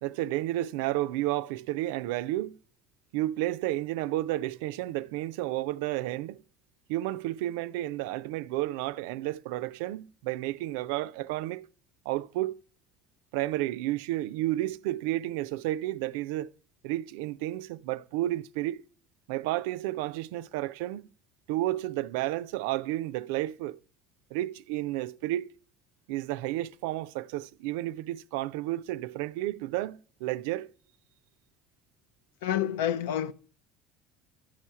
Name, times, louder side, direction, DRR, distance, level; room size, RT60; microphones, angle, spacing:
voice 1, 0.0-2.6 3.1-6.4 6.9-11.6 12.1-12.6 13.3-16.5 16.8-18.8 19.3-21.1 21.5-23.8 24.3-25.5 26.1-30.7, right 16 dB, 80° right, 0.3 m, -31 dB
voice 2, 32.4-33.3, left 10 dB, 90° left, 0.5 m, -28 dB
11.0 x 4.8 x 5.6 m
supercardioid pair, 90°, 0 cm